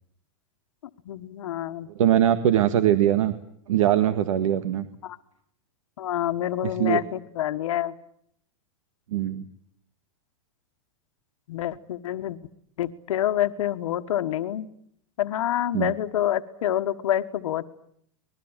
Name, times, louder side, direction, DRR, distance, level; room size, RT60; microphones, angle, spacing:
voice 1, 1.0-1.9 5.0-5.2 6.0-7.9 11.5-12.4 12.8-14.7 15.2-17.7, left 12 dB, 85° left, 9 dB, 1.5 m, -27 dB
voice 2, 2.0-3.3 3.7-4.9 6.8-7.0 9.1-9.4 15.7-15.9, right 11 dB, 90° right, 12 dB, 1.7 m, -21 dB
25.5 x 21.0 x 9.0 m, 0.68 s
supercardioid pair, 175°, 16 cm